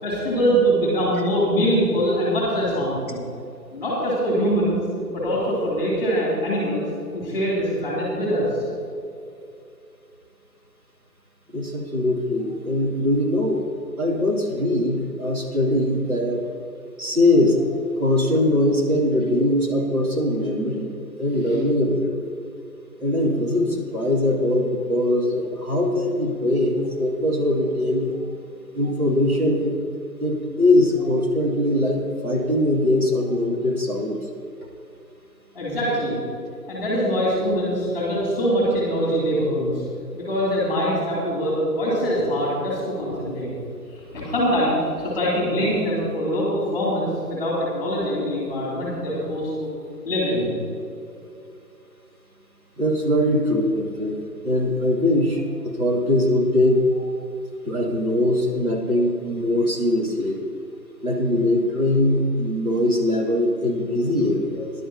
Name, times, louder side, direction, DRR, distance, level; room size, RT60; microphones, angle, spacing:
voice 1, 0.0-3.2 3.7-4.8 5.1-6.9 7.1-8.6 35.5-36.2 36.7-39.7 40.1-43.5 43.9-49.7 50.0-50.5, equal, 10° left, -6 dB, 2.8 m, -23 dB
voice 2, 11.5-13.7 14.0-16.4 17.0-17.6 18.0-20.9 21.2-22.3 23.0-28.2 28.7-29.8 30.2-34.2 52.8-54.2 54.4-56.8 57.6-60.4 61.0-64.7, left 1 dB, 60° right, -3 dB, 2.9 m, -21 dB
18.5 x 11.0 x 2.9 m, 2.5 s
figure-of-eight pair, 160°, 49 cm